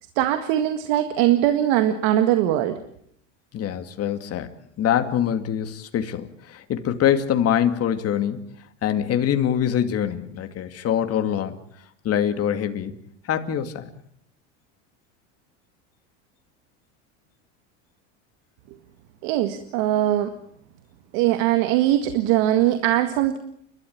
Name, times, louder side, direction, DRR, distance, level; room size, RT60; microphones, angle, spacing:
voice 1, 0.2-2.8 19.2-20.3 21.1-23.4, right 13 dB, 70° right, 8 dB, 1.9 m, -21 dB
voice 2, 3.5-8.5 8.8-11.6 12.0-13.0 13.3-13.8, left 9 dB, 40° left, 7 dB, 2.3 m, -24 dB
30.0 x 13.0 x 8.7 m, 0.70 s
supercardioid pair, 105°, 37 cm